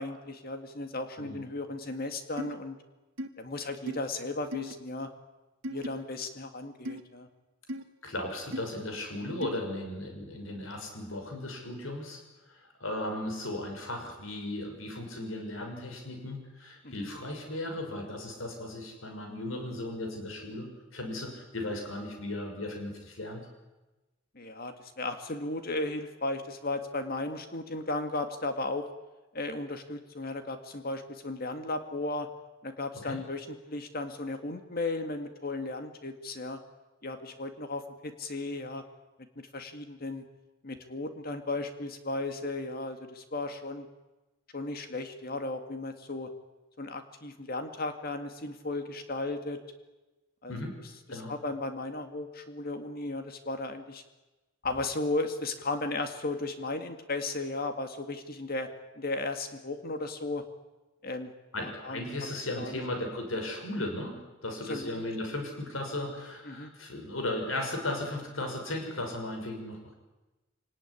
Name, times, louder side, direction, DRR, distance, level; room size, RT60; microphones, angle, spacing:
voice 1, 0.0-2.8 3.4-5.1 5.7-7.3 16.8-17.1 24.4-28.9 29.3-32.3 32.6-36.6 37.0-38.8 39.4-40.2 40.6-43.9 44.5-46.3 46.8-49.6 50.4-50.6 51.1-54.0 54.6-58.7 59.0-60.4 61.0-61.3 61.6-62.8 64.7-65.0 66.5-66.7, left 2 dB, 50° left, 7 dB, 2.0 m, -35 dB
sound 1, 2.4-2.5 3.2-3.3 3.9-4.0 4.5-4.7 5.6-5.9 6.9-7.0 7.7-7.8 8.5-8.6 9.4-9.6, equal, 75° right, 1.7 m, -36 dB
voice 2, 8.0-12.2 12.5-23.5 33.0-33.2 50.5-50.8 51.1-51.3 61.5-69.9, left 1 dB, 90° left, 4 dB, 6.2 m, -36 dB
26.0 x 19.0 x 9.9 m, 1.1 s
head